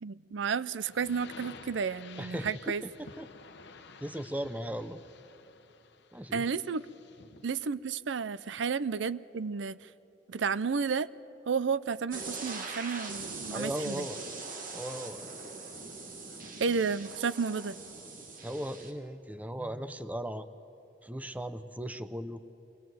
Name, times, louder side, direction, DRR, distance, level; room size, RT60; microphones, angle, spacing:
voice 1, 0.0-2.8 6.3-6.9 7.4-9.8 10.3-11.1 11.5-14.1 16.6-17.8, right 5 dB, 80° right, 18 dB, 0.5 m, -32 dB
sound 1, 0.8-7.5, left 4 dB, 65° left, 1.0 m, -52 dB
voice 2, 2.2-2.9 3.2-3.3 4.0-5.0 6.1-6.4 13.5-14.2 14.7-15.3 18.4-20.5 21.0-22.4, equal, 10° right, 11 dB, 0.6 m, -37 dB
sound 2, 12.1-18.9, right 3 dB, 50° right, 2.0 m, -42 dB
23.5 x 19.0 x 7.7 m, 2.9 s
head